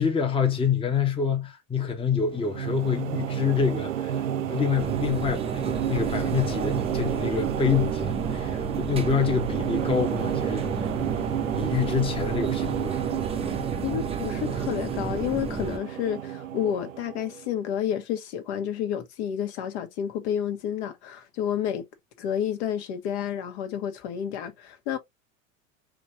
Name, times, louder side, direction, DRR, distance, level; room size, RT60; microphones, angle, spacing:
voice 1, 0.0-11.0 11.5-13.0, left 6 dB, 15° left, 1.0 m, -27 dB
sound 1, 2.2-17.5, right 10 dB, 75° right, 0.6 m, -31 dB
sound 2, 4.8-15.8, right 5 dB, 15° right, 0.8 m, -33 dB
voice 2, 13.8-21.8 22.2-25.0, left 9 dB, 55° left, 1.3 m, -30 dB
5.0 x 3.3 x 2.8 m
figure-of-eight pair, 80°, 39 cm